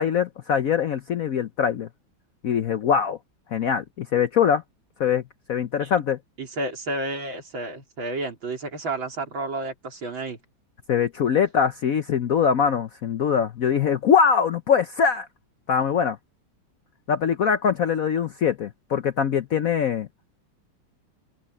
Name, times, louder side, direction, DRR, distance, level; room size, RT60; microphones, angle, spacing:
voice 1, 0.0-1.9 2.4-3.2 3.5-4.6 5.0-5.2 5.5-6.2 10.9-15.3 15.7-16.2 17.1-20.1, left 7 dB, 60° left, 0.9 m, -22 dB
voice 2, 6.4-10.4, right 2 dB, 75° right, 4.5 m, -31 dB
omnidirectional pair, 2.2 m